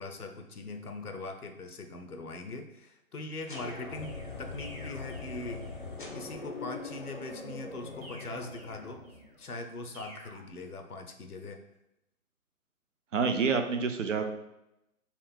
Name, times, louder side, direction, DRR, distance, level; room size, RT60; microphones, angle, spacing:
voice 1, 0.0-5.7 6.1-9.0 9.4-11.6, left 2 dB, 80° left, 6 dB, 0.8 m, -41 dB
sound 1, 3.5-9.4, left 3 dB, 35° left, 0.5 m, -42 dB
sound 2, 3.5-5.9 8.0-9.4 9.9-10.4, right 1 dB, 25° right, 0.8 m, -51 dB
voice 2, 13.1-14.2, right 5 dB, 55° right, 6 dB, 0.6 m, -27 dB
4.2 x 2.5 x 4.4 m, 0.86 s
figure-of-eight pair, 135°, 44 cm